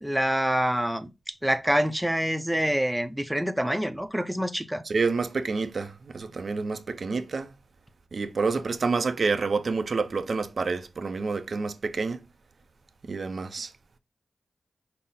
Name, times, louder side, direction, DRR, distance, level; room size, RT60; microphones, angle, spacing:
voice 1, 0.0-1.1 1.4-4.8, equal, 5° right, 0.6 m, -26 dB
voice 2, 4.8-7.5 8.1-12.2 13.0-13.7, right 4 dB, 60° right, 0.5 m, -28 dB
5.5 x 2.1 x 3.8 m
cardioid pair, 65°, 0 cm